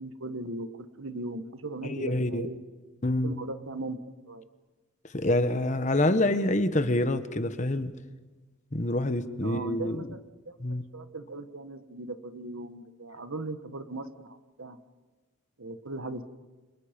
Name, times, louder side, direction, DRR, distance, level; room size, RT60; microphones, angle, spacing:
voice 1, 0.0-2.6 3.2-4.5 9.4-10.2 10.5-10.6 10.9-14.8 15.6-16.2, right 2 dB, 80° right, 10 dB, 1.4 m, -38 dB
voice 2, 1.8-2.5 3.0-3.4 5.1-7.9 8.7-10.0 10.6-10.8, left 1 dB, 35° left, 10 dB, 1.1 m, -26 dB
29.5 x 26.5 x 5.2 m, 1.2 s
head